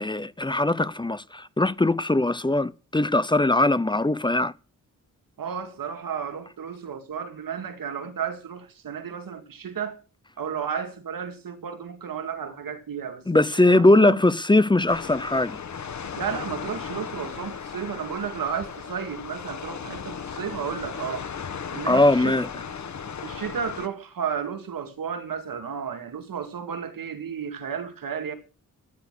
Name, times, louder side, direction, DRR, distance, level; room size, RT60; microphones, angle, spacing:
voice 1, 0.0-4.5 13.3-15.6 21.9-22.5, left 2 dB, 15° left, 0.6 m, -20 dB
voice 2, 5.4-10.0 10.4-13.3 13.6-14.2 16.1-21.3 21.7-22.4 23.2-28.3, right 7 dB, 80° right, 2.2 m, -33 dB
sound 1, 14.9-23.9, left 6 dB, 55° left, 1.4 m, -36 dB
15.0 x 10.5 x 6.3 m
wide cardioid pair, 160°, 34 cm